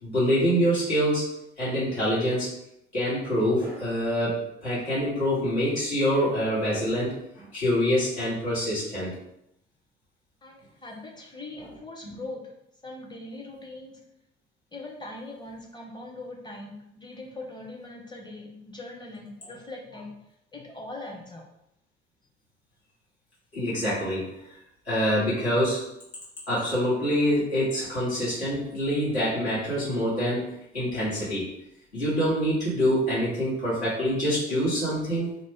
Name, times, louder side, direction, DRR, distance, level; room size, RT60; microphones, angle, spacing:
voice 1, 0.0-1.2 1.6-2.5 2.9-9.1 11.6-11.7 12.0-12.2 23.5-24.3 24.8-25.8 26.5-31.5 31.9-35.3, equal, 80° left, -10 dB, 1.2 m, -25 dB
voice 2, 10.4-12.5 12.8-13.9 14.7-20.1 20.5-21.4, left 2 dB, 15° left, 0 dB, 0.6 m, -41 dB
2.4 x 2.0 x 3.5 m, 0.81 s
figure-of-eight pair, 55°, 32 cm